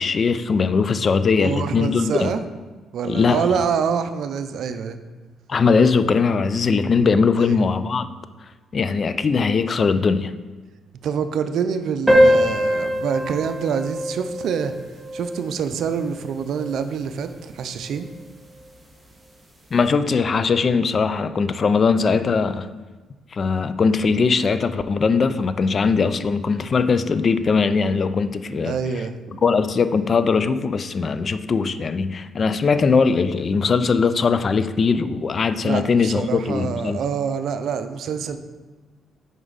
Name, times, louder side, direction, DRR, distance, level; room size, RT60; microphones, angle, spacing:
voice 1, 0.0-2.3 3.0-3.6 5.5-8.1 8.7-10.3 19.7-22.7 23.3-28.8 29.4-37.0, left 5 dB, 45° left, 12 dB, 0.4 m, -20 dB
voice 2, 1.4-2.4 2.9-5.0 11.0-14.7 15.1-18.1 28.6-29.4 35.6-38.4, right 7 dB, 70° right, 9 dB, 0.5 m, -26 dB
sound 1, 12.1-17.0, equal, 10° right, 1.4 m, -22 dB
7.8 x 5.1 x 4.0 m, 1.3 s
cardioid pair, 90°, 0 cm